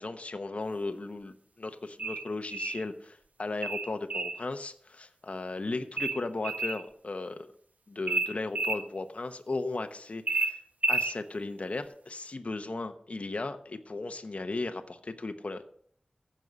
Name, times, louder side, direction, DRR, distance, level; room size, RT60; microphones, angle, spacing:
voice 1, 0.0-7.5 7.9-10.6 10.9-15.6, left 3 dB, 55° left, 7 dB, 0.9 m, -36 dB
sound 1, 2.0-2.8 3.6-4.4 6.0-6.8 8.1-8.8 10.3-11.2, right 2 dB, 65° right, 1.0 m, -30 dB
14.5 x 5.5 x 6.2 m, 0.62 s
wide cardioid pair, 80°, 3 cm